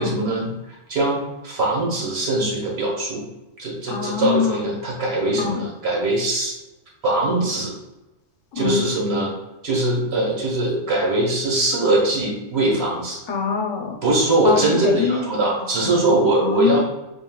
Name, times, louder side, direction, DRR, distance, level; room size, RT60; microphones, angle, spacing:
voice 1, 0.0-3.2 3.6-6.6 7.0-7.7 8.5-9.3 9.6-13.2 14.0-16.8, right 2 dB, 55° right, -2 dB, 1.4 m, -21 dB
voice 2, 3.9-4.7 5.4-5.6 8.5-8.8 13.3-14.0 14.4-15.3 15.6-16.8, left 6 dB, 75° left, 2 dB, 1.1 m, -25 dB
5.3 x 2.8 x 2.3 m, 0.99 s
omnidirectional pair, 1.3 m